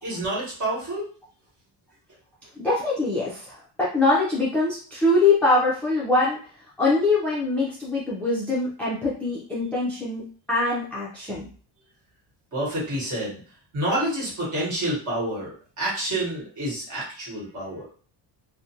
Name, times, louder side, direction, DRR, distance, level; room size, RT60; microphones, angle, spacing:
voice 1, 0.0-1.1 12.5-13.4 13.7-17.9, right 1 dB, 40° right, -5 dB, 1.3 m, -28 dB
voice 2, 2.6-6.4 6.8-11.5, left 2 dB, 5° left, -6 dB, 0.4 m, -23 dB
2.5 x 2.2 x 2.7 m, 0.42 s
cardioid pair, 160°, 47 cm